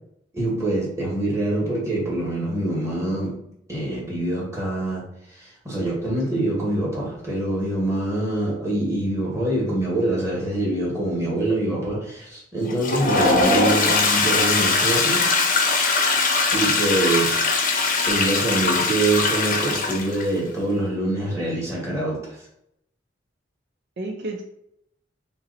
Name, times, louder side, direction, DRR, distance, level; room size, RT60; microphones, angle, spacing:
voice 1, 0.3-3.4 3.7-5.0 5.4-15.3 15.6-15.7 16.5-17.4 18.1-22.3, right 1 dB, 15° right, -5 dB, 1.4 m, -25 dB
Toilet flush, 12.6-20.3, left 3 dB, 45° left, 0.7 m, -21 dB
voice 2, 13.4-14.1 24.0-24.4, right 2 dB, 60° right, 2 dB, 0.5 m, -32 dB
2.9 x 2.7 x 3.9 m, 0.77 s
head